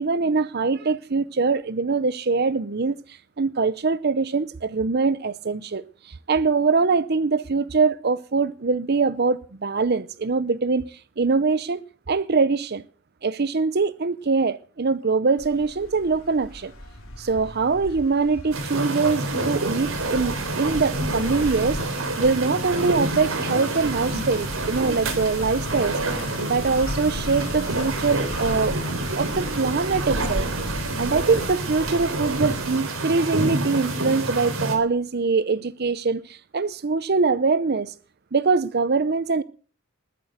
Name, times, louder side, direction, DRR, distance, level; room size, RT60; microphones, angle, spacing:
voice 1, 0.0-3.0 3.4-5.8 6.3-10.9 11.2-11.8 12.1-12.8 13.2-16.7 17.2-21.8 22.2-28.8 29.2-30.5 31.0-37.9 38.3-39.4, right 4 dB, 50° right, 0.6 m, -23 dB
sound 1, 15.4-33.5, left 1 dB, 80° left, 3.1 m, -36 dB
sound 2, 18.5-34.8, right 2 dB, 75° right, 3.8 m, -28 dB
20.5 x 9.0 x 6.5 m
head